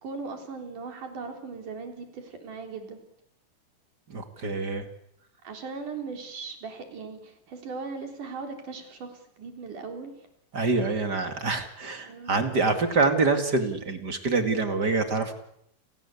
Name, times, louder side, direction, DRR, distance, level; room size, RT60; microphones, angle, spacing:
voice 1, 0.0-3.0 5.4-10.1 12.1-12.4, right 4 dB, 65° right, 4 dB, 5.2 m, -38 dB
voice 2, 4.1-4.9 10.5-15.3, right 3 dB, 35° right, 7 dB, 2.4 m, -26 dB
30.0 x 17.5 x 8.5 m, 0.77 s
omnidirectional pair, 3.9 m